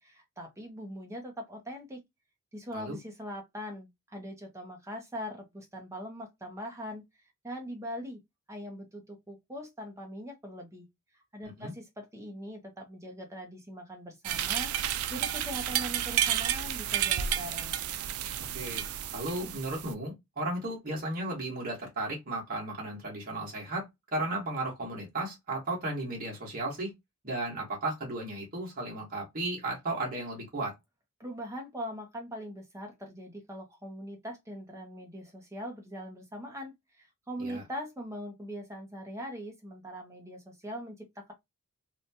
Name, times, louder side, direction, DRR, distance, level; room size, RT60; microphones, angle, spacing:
voice 1, 0.0-2.0 2.5-8.2 8.5-10.9 11.1-17.8 31.2-41.3, equal, 15° right, 0.7 m, -41 dB
sound 1, 14.2-19.9, right 10 dB, 80° right, 0.3 m, -31 dB
voice 2, 19.1-23.9 24.1-26.9 27.2-30.7 37.4-37.6, right 2 dB, 40° right, 1.2 m, -34 dB
2.8 x 2.2 x 2.6 m
head